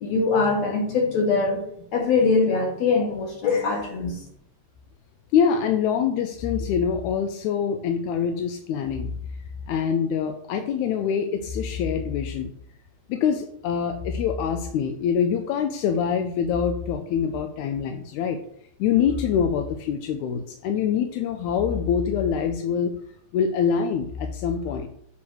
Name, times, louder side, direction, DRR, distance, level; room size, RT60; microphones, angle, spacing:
voice 1, 0.0-1.6 1.9-4.2, left 4 dB, 70° left, 0 dB, 2.7 m, -22 dB
voice 2, 5.3-9.1 9.7-12.5 13.1-18.4 18.8-22.9 23.3-24.9, left 7 dB, 85° left, 5 dB, 2.0 m, -25 dB
7.3 x 3.1 x 6.1 m, 0.68 s
omnidirectional pair, 3.3 m